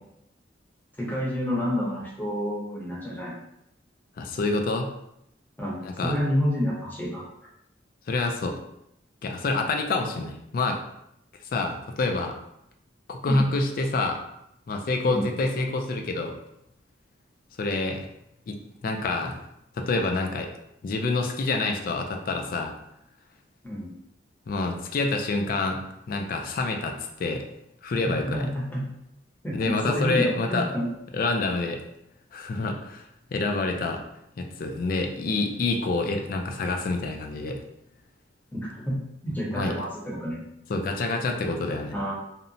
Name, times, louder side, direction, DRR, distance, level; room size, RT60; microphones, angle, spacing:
voice 1, 1.0-3.4 5.6-7.2 13.3-13.5 15.1-15.3 23.6-23.9 28.0-28.8 29.4-30.9 38.5-39.0 39.2-40.4 41.9-42.1, equal, 10° left, -5 dB, 0.7 m, -29 dB
voice 2, 4.2-4.9 5.8-6.2 8.1-8.6 9.2-10.8 11.5-12.4 13.1-14.2 14.7-16.4 17.6-18.1 18.5-19.4 19.8-20.5 20.8-22.7 24.5-25.8 26.1-27.4 27.8-28.5 29.5-30.7 31.1-31.8 32.3-34.0 34.4-37.6 39.3-39.7 40.7-41.9, left 3 dB, 50° left, 3 dB, 0.3 m, -27 dB
2.8 x 2.1 x 2.6 m, 0.81 s
head